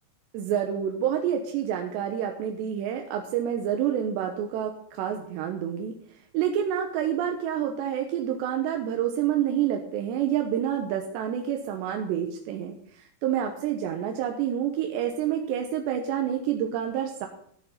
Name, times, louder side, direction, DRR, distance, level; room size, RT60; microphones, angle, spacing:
voice 1, 0.3-5.9 6.3-17.3, right 9 dB, 85° right, 3 dB, 3.2 m, -28 dB
14.0 x 7.1 x 8.3 m, 0.66 s
omnidirectional pair, 4.9 m